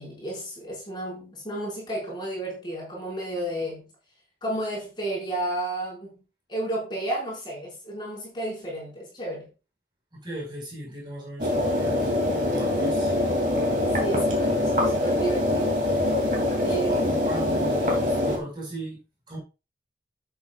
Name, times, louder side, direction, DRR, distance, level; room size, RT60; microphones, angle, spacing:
voice 1, 0.0-3.9 4.4-6.2 6.5-9.5 14.0-15.8 16.6-17.0, right 1 dB, 25° left, 5.9 m, -32 dB
voice 2, 10.1-13.1 16.6-19.0 19.3-19.4, right 1 dB, 25° right, 5.4 m, -38 dB
sound 1, 11.4-18.4, left 1 dB, 45° right, 3.1 m, -24 dB
12.0 x 8.5 x 2.5 m
head